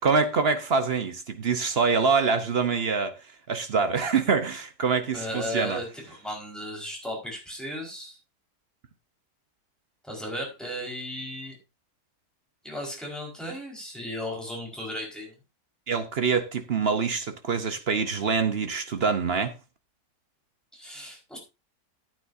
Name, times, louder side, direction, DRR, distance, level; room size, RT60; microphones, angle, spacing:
voice 1, 0.0-3.1 3.5-5.8 15.9-19.5, right 5 dB, 45° right, 0.9 m, -25 dB
voice 2, 5.1-8.2 10.0-11.6 12.6-15.4 20.7-21.4, equal, ahead, 4.7 m, -35 dB
14.0 x 9.5 x 2.7 m
omnidirectional pair, 1.7 m